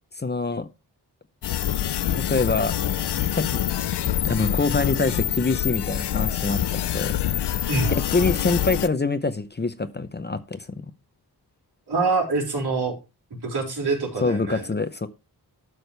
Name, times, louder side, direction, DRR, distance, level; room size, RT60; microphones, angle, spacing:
voice 1, 0.2-0.7 2.1-2.7 3.3-3.6 4.2-7.2 7.9-10.7 14.2-15.1, left 3 dB, 25° left, 0.7 m, -25 dB
sound 1, 1.4-8.9, left 11 dB, 90° left, 0.6 m, -26 dB
voice 2, 11.9-12.9 13.3-14.7, right 3 dB, 75° right, 4.1 m, -25 dB
12.5 x 6.3 x 3.3 m
wide cardioid pair, 105°, 40 cm